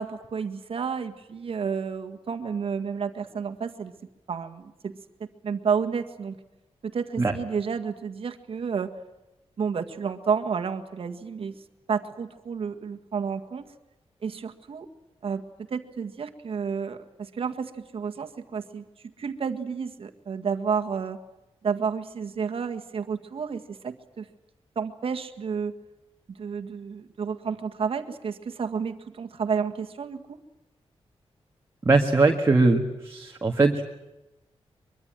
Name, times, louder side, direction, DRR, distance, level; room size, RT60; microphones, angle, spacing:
voice 1, 0.0-3.9 4.3-6.4 6.8-8.9 9.6-11.6 11.9-13.7 14.2-14.9 15.2-15.4 15.7-18.8 19.2-21.2 21.6-24.3 24.8-25.8 26.4-30.4, right 6 dB, 60° right, 6 dB, 1.8 m, -31 dB
voice 2, 31.9-33.8, right 3 dB, 25° right, 2 dB, 1.8 m, -21 dB
24.0 x 23.0 x 9.1 m, 0.97 s
wide cardioid pair, 155°, 11 cm